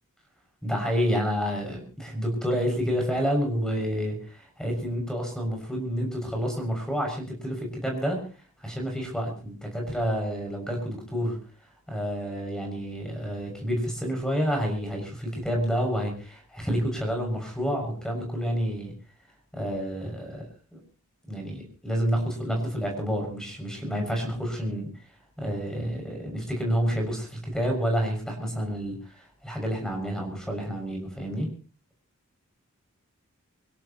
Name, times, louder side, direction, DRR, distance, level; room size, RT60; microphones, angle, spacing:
voice 1, 0.6-8.2 8.6-11.4 11.9-18.9 19.5-20.4 20.7-20.8 21.3-24.9 25.4-31.5, equal, 5° left, 2 dB, 6.8 m, -29 dB
25.5 x 17.0 x 3.1 m, 0.38 s
head